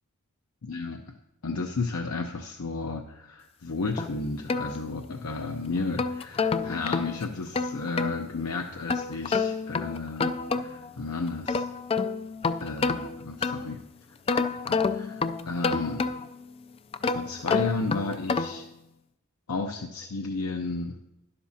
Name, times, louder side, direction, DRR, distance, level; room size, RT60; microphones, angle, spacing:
voice 1, 0.6-1.0 1.4-11.6 12.6-13.8 14.6-16.1 17.1-18.7 19.5-21.0, left 3 dB, 75° left, 3 dB, 0.7 m, -33 dB
sound 1, 4.0-5.3 5.8-8.2 8.9-10.9 11.3-13.8 14.3-16.4 16.9-18.7, left 4 dB, 25° left, 0.3 m, -29 dB
12.0 x 11.0 x 2.8 m, 0.88 s
head